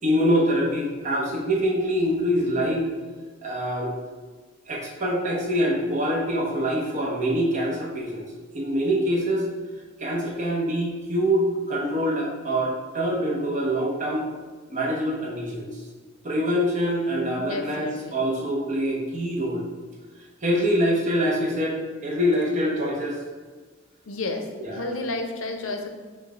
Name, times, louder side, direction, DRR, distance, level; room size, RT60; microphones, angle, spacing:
voice 1, 0.0-2.9 3.4-3.9 4.7-8.3 8.5-9.5 10.0-14.2 14.7-15.8 16.2-19.6 20.4-23.2 24.6-24.9, equal, 40° right, -3 dB, 0.9 m, -25 dB
voice 2, 17.4-18.2 24.1-25.9, left 3 dB, 80° left, 4 dB, 0.6 m, -31 dB
6.0 x 2.4 x 3.2 m, 1.4 s
head